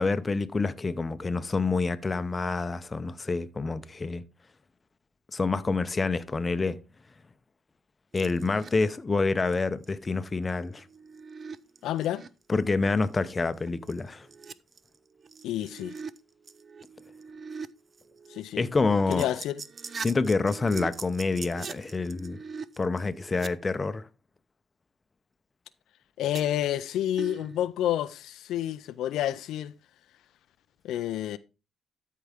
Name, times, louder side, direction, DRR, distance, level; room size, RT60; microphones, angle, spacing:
voice 1, 0.0-4.2 5.3-6.8 8.1-10.8 12.5-14.3 18.6-19.3 20.0-22.4 22.8-24.1, left 3 dB, 25° left, 0.7 m, -27 dB
sound 1, 8.2-8.8 9.2-9.5 9.8-9.9 10.5-12.3 12.9-13.0 13.3-13.4 13.6-16.2 16.4-17.7 18.0-23.5 26.3-26.9 27.2-27.7, right 5 dB, 40° right, 0.5 m, -42 dB
voice 2, 11.8-12.2 15.4-15.9 18.3-18.7 19.1-19.6 26.2-29.7 30.8-31.4, left 12 dB, 85° left, 0.4 m, -29 dB
13.0 x 4.6 x 3.6 m
cardioid pair, 90°, 0 cm